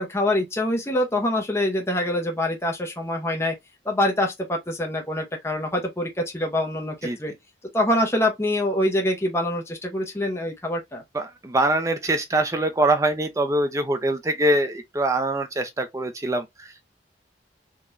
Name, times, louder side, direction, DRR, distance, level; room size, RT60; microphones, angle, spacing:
voice 1, 0.0-3.5 3.8-7.3 7.7-11.0, left 1 dB, 15° left, 0.8 m, -25 dB
voice 2, 11.1-16.8, right 1 dB, 15° right, 0.4 m, -23 dB
3.7 x 2.9 x 2.5 m
head